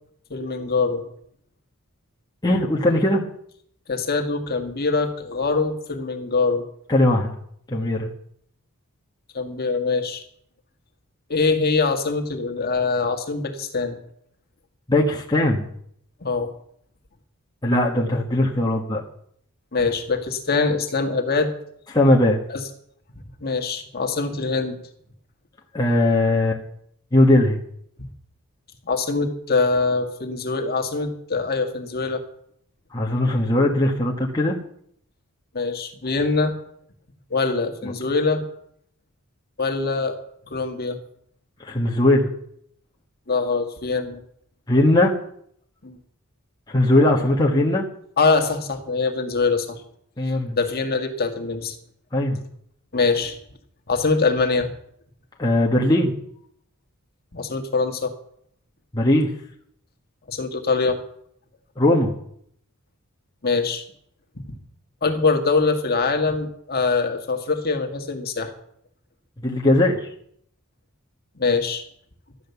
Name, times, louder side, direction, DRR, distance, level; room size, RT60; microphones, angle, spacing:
voice 1, 0.3-1.1 3.9-6.6 9.3-10.2 11.3-14.0 16.2-16.5 19.7-21.5 22.5-22.6 23.4-24.8 28.8-32.2 35.5-36.5 37.3-38.4 39.6-40.2 40.5-41.0 43.3-44.2 45.8-46.0 48.2-49.8 50.5-51.8 52.9-53.4 53.9-54.7 57.3-58.1 60.3-61.0 63.4-63.8 64.5-64.6 65.0-68.5 71.4-71.8, left 4 dB, 45° left, 5 dB, 1.7 m, -23 dB
voice 2, 2.4-3.2 6.9-7.3 7.7-8.1 14.9-15.7 17.6-19.0 21.9-22.4 25.7-26.6 27.1-27.6 32.9-34.6 37.8-37.9 41.6-42.3 44.7-45.1 46.7-47.8 50.2-50.6 52.1-52.4 55.4-56.1 58.9-59.3 61.8-62.1 69.4-70.1, left 1 dB, 20° left, -1 dB, 1.3 m, -19 dB
12.5 x 10.0 x 6.9 m, 0.69 s
head